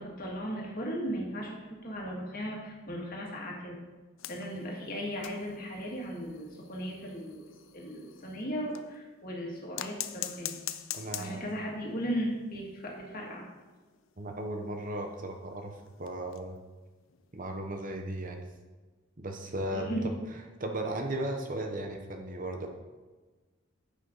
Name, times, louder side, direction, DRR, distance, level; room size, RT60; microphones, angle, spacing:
voice 1, 0.0-1.6 1.8-3.8 4.3-10.6 11.2-13.4 19.7-20.1, equal, 45° left, -2 dB, 2.3 m, -36 dB
sound 1, 4.2-9.0 9.7-11.7 12.0-12.1 12.4-12.5 12.8-12.9 13.6-16.7 17.1-17.3 18.5-18.6, left 12 dB, 75° left, 0.6 m, -43 dB
voice 2, 10.9-11.4 14.2-16.6 17.3-18.4 19.2-20.1 20.6-22.7, right 1 dB, 40° right, 4 dB, 0.9 m, -36 dB
9.8 x 8.3 x 4.0 m, 1.3 s
head